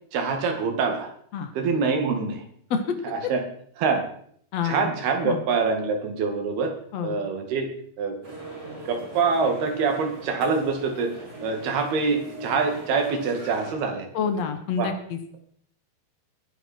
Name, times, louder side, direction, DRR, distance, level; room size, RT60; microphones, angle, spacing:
voice 1, 0.1-1.1 1.5-2.4 3.0-3.4 3.8-4.1 4.6-6.7 7.0-7.7 8.0-8.2 8.9-11.1 11.4-14.1 14.8-14.9, right 4 dB, 65° right, 5 dB, 4.1 m, -25 dB
voice 2, 4.5-4.9 5.2-5.4 6.9-7.2 14.1-15.2, left 6 dB, 60° left, 7 dB, 1.9 m, -27 dB
sound 1, 8.2-13.7, right 2 dB, 20° right, 5.6 m, -41 dB
21.0 x 11.0 x 4.5 m, 0.63 s
omnidirectional pair, 4.9 m